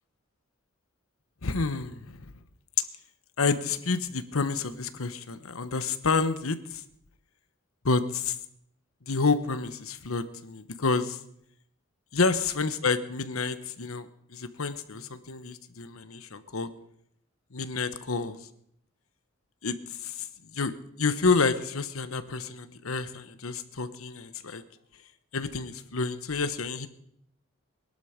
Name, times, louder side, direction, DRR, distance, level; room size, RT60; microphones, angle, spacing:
voice 1, 1.4-2.2 2.8-2.9 3.4-6.8 7.8-8.4 9.1-11.2 12.1-16.7 17.5-18.4 19.6-20.3 20.5-24.6 25.3-26.9, left 4 dB, 80° left, 11 dB, 1.1 m, -29 dB
21.0 x 11.5 x 5.2 m, 0.71 s
head